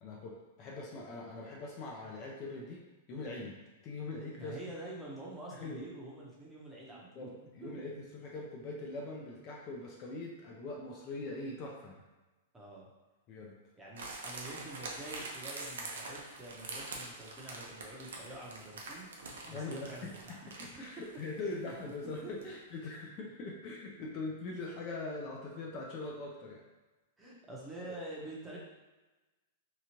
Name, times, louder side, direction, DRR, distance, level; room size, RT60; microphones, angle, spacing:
voice 1, 0.0-3.6 3.8-4.6 5.5-5.9 6.9-12.0 13.3-13.6 19.4-26.6 27.8-27.9, left 3 dB, 35° left, -2 dB, 0.5 m, -42 dB
voice 2, 4.4-7.3 7.6-7.8 12.5-12.9 13.8-19.1 19.5-20.5 21.6-21.7 22.2-22.5 27.2-28.6, right 2 dB, 10° right, -5 dB, 0.7 m, -47 dB
sound 1, 14.0-22.6 22.8-22.9, right 2 dB, 85° right, 0.6 m, -45 dB
2.8 x 2.4 x 2.9 m, 1.2 s
hypercardioid pair, 145°, 0 cm